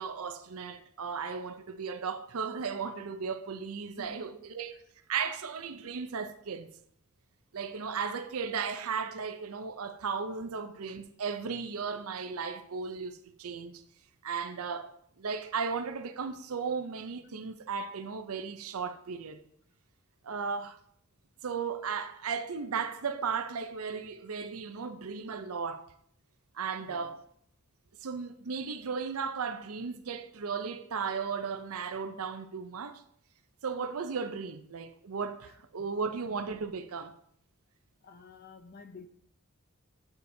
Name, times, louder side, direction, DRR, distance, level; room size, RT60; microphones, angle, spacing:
voice 1, 0.0-4.8 5.1-6.7 7.5-13.8 14.2-14.9 15.2-19.4 20.2-20.8 21.4-25.9 26.5-27.1 28.0-33.0 33.6-37.1, right 5 dB, 75° right, 0.6 m, -35 dB
voice 2, 4.0-4.4 20.4-20.6 26.8-27.2 35.8-35.9 38.0-39.1, left 3 dB, 45° left, 0.6 m, -50 dB
8.0 x 6.9 x 2.7 m
head